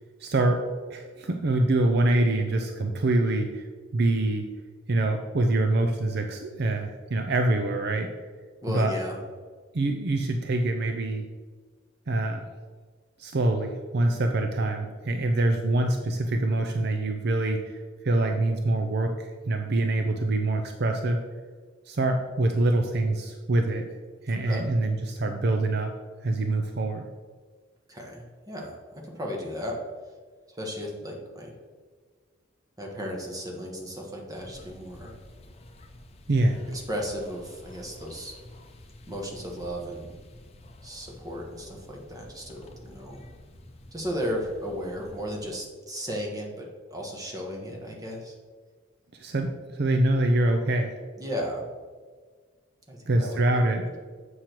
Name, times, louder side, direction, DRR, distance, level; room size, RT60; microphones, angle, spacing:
voice 1, 0.2-3.7 3.9-4.5 4.9-8.1 8.7-8.9 9.7-11.3 12.1-12.4 13.2-21.2 21.9-23.8 24.2-25.9 26.2-27.0 36.3-36.6 49.1-50.9 53.1-54.0, right 2 dB, 55° right, 4 dB, 0.5 m, -25 dB
voice 2, 8.6-9.1 24.3-24.6 27.9-28.8 29.0-29.8 30.5-31.5 32.8-35.1 36.7-38.3 39.1-40.2 40.8-43.3 43.9-48.3 51.2-51.7 52.9-53.6 53.9-54.0, equal, 20° right, -1 dB, 1.4 m, -35 dB
sound 1, 34.3-45.4, left 1 dB, 30° left, 0.7 m, -50 dB
7.5 x 6.3 x 4.5 m, 1.5 s
head